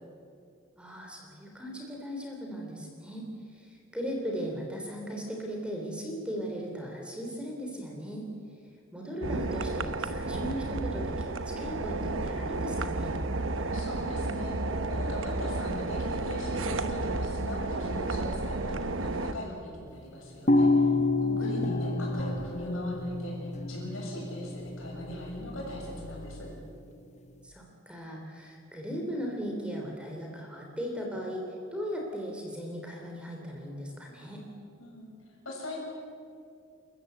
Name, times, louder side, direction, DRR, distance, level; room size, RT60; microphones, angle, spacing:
voice 1, 0.8-8.2 8.9-13.2 21.4-21.7 27.4-31.4 31.7-34.4, equal, 5° right, 0 dB, 3.4 m, -37 dB
sound 1, 9.2-19.3, right 2 dB, 70° right, 1.0 m, -32 dB
voice 2, 13.7-14.6 14.9-20.8 21.2-26.5 34.8-35.2 35.4-35.8, left 1 dB, 80° left, -2 dB, 7.2 m, -40 dB
sound 2, 20.5-26.6, left 2 dB, 35° left, 0.8 m, -29 dB
28.5 x 14.5 x 8.1 m, 2.4 s
head